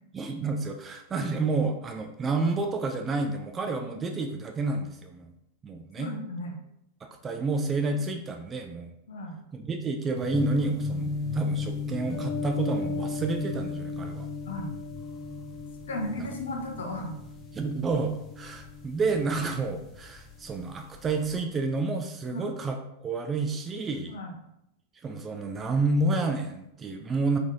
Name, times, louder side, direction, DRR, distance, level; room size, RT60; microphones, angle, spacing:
voice 1, 0.1-5.3 5.6-6.1 7.0-9.0 9.5-14.3 16.2-16.3 17.5-24.1 25.0-27.4, right 3 dB, 20° right, 5 dB, 0.3 m, -30 dB
voice 2, 6.0-6.6 9.1-9.3 14.5-14.7 15.9-17.1 22.3-22.5 24.1-24.3, left 1 dB, 65° left, 2 dB, 0.5 m, -35 dB
sound 1, 10.2-20.2 20.5-21.3, left 3 dB, 15° left, 0.6 m, -35 dB
3.6 x 3.2 x 2.6 m, 0.80 s
figure-of-eight pair, 90°, 0 cm